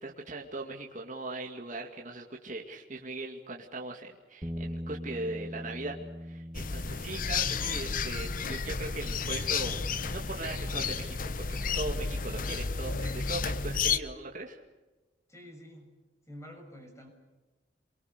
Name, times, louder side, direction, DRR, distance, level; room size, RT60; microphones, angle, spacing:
voice 1, 0.0-11.5 11.7-14.6, right 2 dB, 45° right, 1 dB, 2.3 m, -39 dB
Bass guitar, 4.4-10.7, equal, 15° right, 1.2 m, -43 dB
sound 1, 6.5-14.0, left 5 dB, 50° left, 1.0 m, -32 dB
voice 2, 15.3-15.9 16.3-17.1, equal, 15° left, 4 dB, 6.7 m, -48 dB
28.0 x 24.0 x 6.8 m, 1.2 s
head